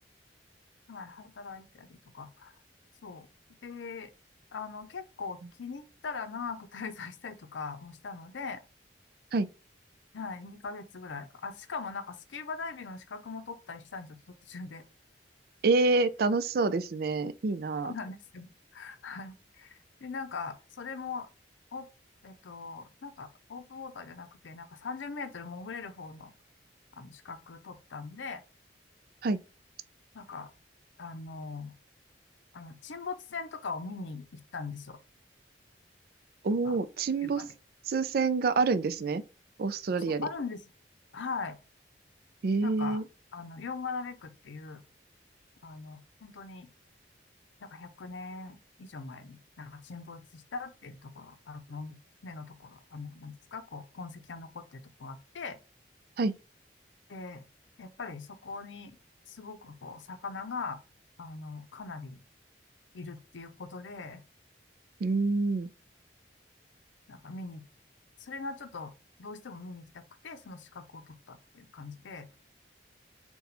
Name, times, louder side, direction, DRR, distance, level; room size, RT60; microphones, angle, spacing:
voice 1, 0.9-2.5 3.0-3.3 3.6-4.1 4.5-8.6 10.1-14.8 17.2-17.3 17.8-21.3 21.7-21.9 22.2-26.3 27.0-28.4 30.1-30.5 31.0-31.8 32.5-35.0 36.6-36.8 37.2-37.5 40.2-40.6 41.1-41.6 42.6-43.0 43.3-44.8 45.6-46.7 47.6-55.6 57.1-57.4 57.8-59.0 59.3-60.8 61.2-62.2 62.9-64.2 67.1-67.6 68.2-68.9 69.2-72.3, left 4 dB, 85° left, 0.6 m, -41 dB
voice 2, 15.6-17.9 29.2-29.4 36.4-37.4 37.9-39.2 39.6-40.3 42.4-43.0 56.2-56.4 65.0-65.7, right 3 dB, 55° right, 0.4 m, -27 dB
4.1 x 2.3 x 4.0 m
head